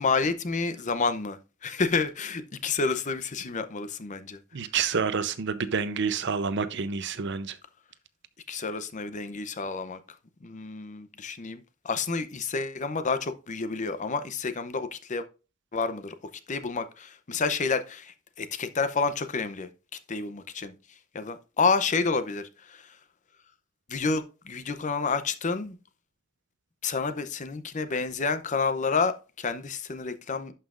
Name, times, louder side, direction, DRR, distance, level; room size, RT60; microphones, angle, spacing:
voice 1, 0.0-4.4 8.5-10.0 10.4-15.2 15.7-16.1 16.5-19.7 20.1-20.7 21.1-23.0 23.9-25.8 26.8-30.5, left 4 dB, 35° left, 0.6 m, -29 dB
voice 2, 4.5-7.6, right 5 dB, 60° right, 0.7 m, -28 dB
11.0 x 5.6 x 2.5 m
head